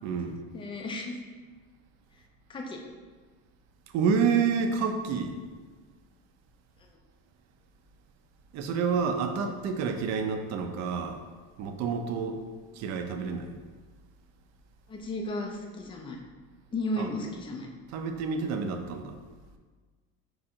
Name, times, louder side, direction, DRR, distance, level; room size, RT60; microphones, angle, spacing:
voice 1, 0.0-0.4 3.9-5.3 8.5-11.2 11.6-12.4 12.7-13.6 17.0-17.1 17.9-19.2, right 5 dB, 50° right, 5 dB, 0.5 m, -29 dB
voice 2, 0.5-1.2 2.5-2.8 14.9-16.2 16.7-17.7, left 1 dB, 15° left, 2 dB, 0.4 m, -34 dB
4.8 x 2.5 x 4.2 m, 1.4 s
cardioid pair, 145°, 35 cm